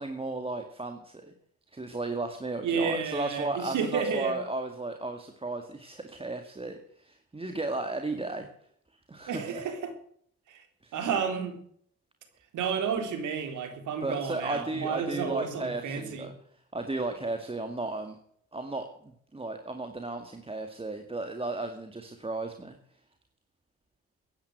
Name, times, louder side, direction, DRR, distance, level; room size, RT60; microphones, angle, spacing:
voice 1, 0.0-1.3 1.7-8.5 9.1-9.5 10.8-11.0 14.0-16.3 16.7-18.2 18.5-22.8, right 2 dB, 20° right, 6 dB, 2.0 m, -34 dB
voice 2, 2.6-4.4 9.3-9.9 10.5-10.6 10.9-11.6 12.5-16.3, right 6 dB, 80° right, 7 dB, 3.7 m, -31 dB
15.5 x 10.0 x 8.1 m, 0.65 s
cardioid pair, 90°, 30 cm